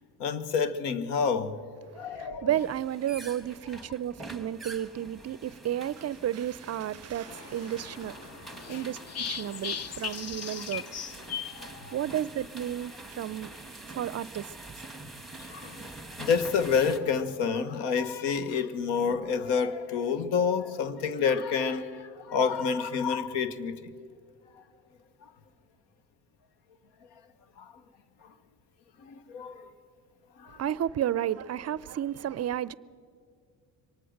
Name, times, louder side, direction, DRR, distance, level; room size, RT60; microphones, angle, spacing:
voice 1, 0.2-1.6 1.9-2.5 8.7-8.8 11.6-11.9 15.4-15.9 16.2-23.9 27.6-27.7 29.0-29.7 30.4-30.6, left 6 dB, 80° left, 1.4 m, -29 dB
voice 2, 1.9-8.3 8.7-9.0 9.3-10.9 11.9-13.5 13.9-14.5 30.6-32.7, right 11 dB, 40° right, 0.5 m, -32 dB
sound 1, 2.5-17.0, right 2 dB, ahead, 1.7 m, -46 dB
sound 2, 7.2-12.3, left 8 dB, 35° left, 0.8 m, -38 dB
24.0 x 19.0 x 6.6 m
supercardioid pair, 90°, 41 cm